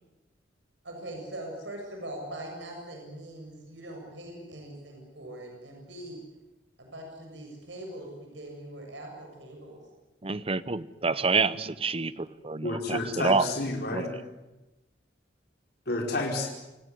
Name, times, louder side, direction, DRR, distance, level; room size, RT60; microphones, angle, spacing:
voice 1, 0.8-6.2 6.8-9.8 11.1-11.3, right 1 dB, 90° right, 1 dB, 7.3 m, -42 dB
voice 2, 10.2-13.5 13.9-14.1, right 4 dB, 35° right, 16 dB, 0.9 m, -28 dB
voice 3, 12.6-14.1 15.9-16.5, left 2 dB, 60° left, 1 dB, 5.0 m, -30 dB
28.5 x 18.0 x 9.7 m, 1.0 s
head